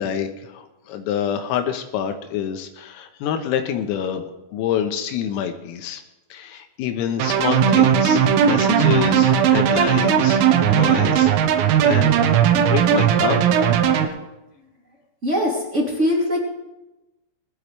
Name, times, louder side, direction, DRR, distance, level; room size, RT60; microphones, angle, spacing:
voice 1, 0.0-6.0 6.3-10.4 10.7-11.3 11.8-12.2 12.5-13.5, left 9 dB, 80° left, 6 dB, 3.8 m, -27 dB
sound 1, 7.2-14.1, right 8 dB, 80° right, 3.6 m, -17 dB
voice 2, 15.2-16.5, left 1 dB, 25° right, -3 dB, 1.6 m, -22 dB
21.0 x 12.5 x 3.3 m, 0.97 s
omnidirectional pair, 6.0 m